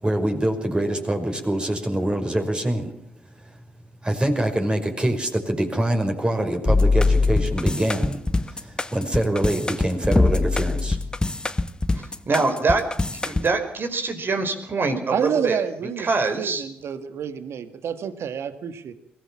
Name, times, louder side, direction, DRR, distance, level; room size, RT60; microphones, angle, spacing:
voice 1, 0.0-2.9 4.0-8.2 8.9-11.0, right 1 dB, 20° right, 4 dB, 5.7 m, -24 dB
sound 1, 6.7-13.5, left 3 dB, 20° left, 1.3 m, -22 dB
voice 2, 11.9-12.8 13.2-15.6 16.0-16.6, right 3 dB, 45° right, 7 dB, 4.9 m, -24 dB
voice 3, 15.1-16.1 16.4-18.9, right 7 dB, 65° right, 11 dB, 1.8 m, -28 dB
22.5 x 16.5 x 7.3 m, 0.72 s
hypercardioid pair, 45°, 5 cm